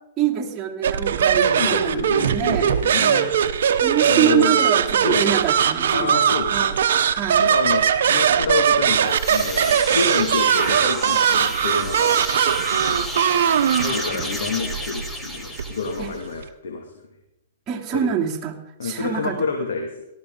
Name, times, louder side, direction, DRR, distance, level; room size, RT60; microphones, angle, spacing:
voice 1, 0.2-2.7 3.0-3.3 3.8-6.2 6.5-6.8 7.1-7.5 14.1-14.2 16.0-16.1 17.7-18.5 18.8-19.3, right 9 dB, 20° right, -4 dB, 3.1 m, -25 dB
sound 1, 0.8-16.4, right 8 dB, 70° right, 0.9 m, -20 dB
voice 2, 1.3-3.7 4.1-4.6 5.0-5.2 5.9-6.7 7.4-12.2 12.7-13.1 13.7-17.1 17.9-18.1 18.8-20.0, left 4 dB, 80° left, 3 dB, 2.2 m, -28 dB
sound 2, 8.8-16.3, left 1 dB, 5° left, 1.5 m, -32 dB
18.5 x 13.0 x 3.9 m, 0.87 s
hypercardioid pair, 135°, 0 cm